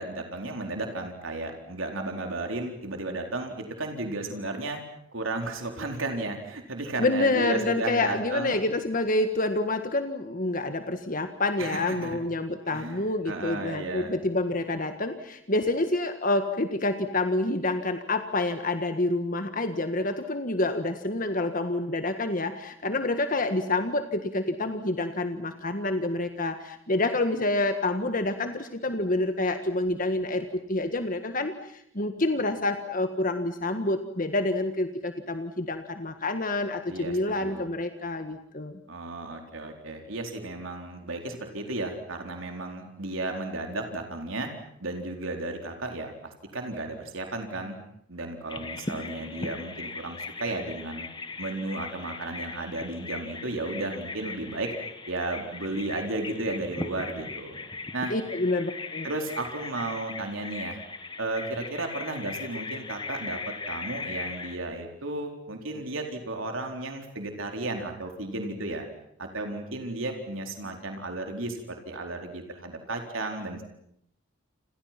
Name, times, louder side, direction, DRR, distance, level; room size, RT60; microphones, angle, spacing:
voice 1, 0.0-4.8 5.1-8.7 11.6-12.2 12.7-14.1 36.9-37.7 38.9-44.5 44.8-47.8 48.1-51.1 51.4-54.7 55.1-57.6 57.9-58.1 59.0-60.8 61.2-68.9 69.2-73.6, right 2 dB, 90° right, 3 dB, 4.2 m, -34 dB
voice 2, 7.0-38.8 58.1-59.1, left 2 dB, 45° left, 7 dB, 1.7 m, -28 dB
Bird vocalization bird call bird song, 48.5-64.6, left 3 dB, 25° left, 1.7 m, -39 dB
29.5 x 28.5 x 6.0 m, 0.73 s
head